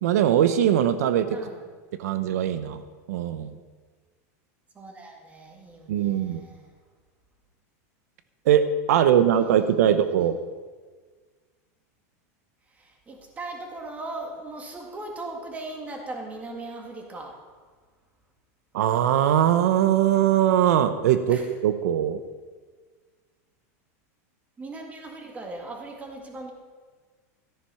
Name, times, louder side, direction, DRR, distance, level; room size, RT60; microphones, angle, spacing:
voice 1, 0.0-1.4 2.0-2.8 3.1-3.5 5.9-6.4 8.5-10.4 18.7-22.2, right 10 dB, 80° right, 11 dB, 0.8 m, -21 dB
voice 2, 1.3-1.6 4.7-6.7 9.0-10.3 12.7-17.4 21.3-21.5 24.6-26.5, right 2 dB, 15° right, 2 dB, 2.1 m, -39 dB
13.5 x 10.0 x 5.7 m, 1.5 s
supercardioid pair, 150°, 8 cm